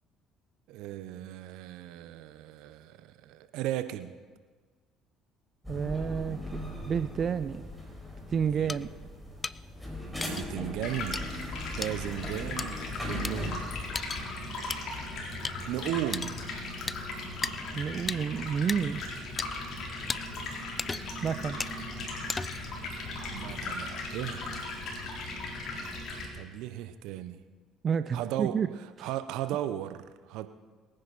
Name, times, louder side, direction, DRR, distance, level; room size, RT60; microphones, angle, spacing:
voice 1, 0.7-4.1 8.6-8.8 10.2-11.3 11.8-13.8 15.7-16.5 23.3-24.5 26.3-27.4 28.1-28.5 29.0-30.5, right 12 dB, 70° right, 11 dB, 0.9 m, -36 dB
sound 1, 5.6-14.0, left 1 dB, 5° left, 4.6 m, -39 dB
voice 2, 5.7-6.4 6.8-7.7 8.3-8.9 17.7-19.0 21.2-21.6 27.8-28.7 29.0-29.1, right 7 dB, 45° right, 12 dB, 0.5 m, -30 dB
sound 2, 8.7-8.8 9.4-9.6 10.2-10.5 11.1-11.2 11.8-11.9 12.6-12.7 13.2-13.3 14.0-14.2 14.7-14.8 15.4-15.6 16.1-16.4 16.9-17.0 17.4-17.5 18.1-18.2 18.7-18.8 19.4-19.5 20.1-20.2 20.8-21.2 21.6-21.8 22.3-22.7, left 4 dB, 25° left, 0.4 m, -34 dB
Stream, 10.8-26.3, left 2 dB, 60° left, 3.9 m, -38 dB
22.5 x 10.0 x 4.2 m, 1.4 s
hypercardioid pair, 60°, 0 cm